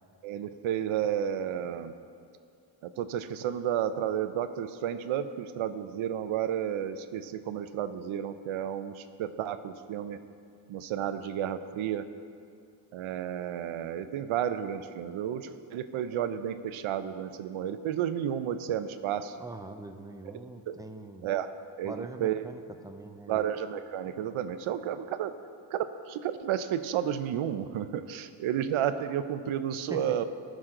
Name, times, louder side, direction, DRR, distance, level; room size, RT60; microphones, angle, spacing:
voice 1, 0.2-1.9 2.8-10.2 10.7-12.0 12.9-19.4 20.7-20.8 21.2-21.5 21.8-22.4 23.3-25.3 25.7-30.2, right 10 dB, 75° right, 11 dB, 0.8 m, -32 dB
voice 2, 19.4-21.3 21.8-23.4 29.9-30.2, right 2 dB, 10° right, 6 dB, 0.6 m, -43 dB
19.0 x 6.4 x 3.8 m, 2.3 s
cardioid pair, 115°, 49 cm